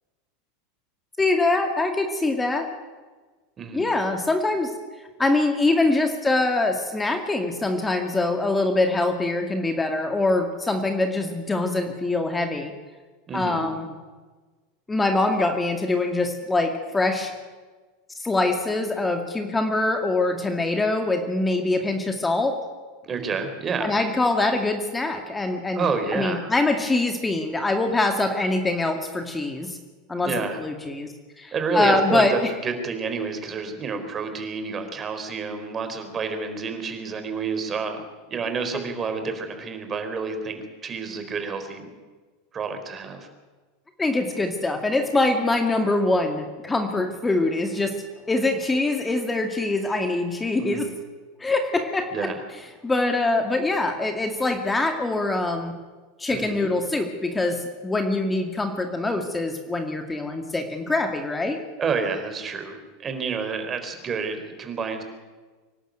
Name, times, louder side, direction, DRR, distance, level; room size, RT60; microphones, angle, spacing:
voice 1, 1.2-2.7 3.7-4.7 5.2-12.7 13.3-13.9 14.9-17.3 18.2-22.6 23.8-25.9 26.1-29.8 30.1-30.3 30.6-32.3 38.7-38.8 44.0-47.9 48.3-50.8 51.4-52.3 52.8-55.7 56.2-61.6, left 2 dB, 15° left, 5 dB, 2.2 m, -24 dB
voice 2, 3.6-3.9 13.3-13.7 23.0-24.0 25.7-26.5 30.2-30.6 31.5-41.9 42.5-43.3 50.6-50.9 52.1-52.4 56.3-56.7 61.8-65.0, right 5 dB, 30° right, 7 dB, 4.0 m, -29 dB
24.5 x 12.0 x 9.2 m, 1.4 s
hypercardioid pair, 95°, 0 cm